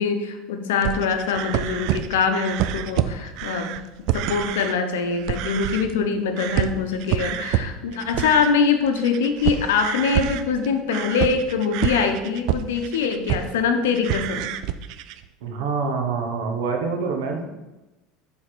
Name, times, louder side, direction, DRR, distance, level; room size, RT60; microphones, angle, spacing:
voice 1, 0.0-3.8 4.1-14.6, left 5 dB, 90° left, 6 dB, 0.7 m, -23 dB
sound 1, 0.8-4.8 5.1-6.1 6.4-13.6 13.9-15.3, right 12 dB, 65° right, 0.3 m, -27 dB
voice 2, 15.4-17.5, right 4 dB, 80° right, 3 dB, 1.1 m, -26 dB
6.5 x 3.5 x 4.4 m, 1.1 s
supercardioid pair, 105°, 0 cm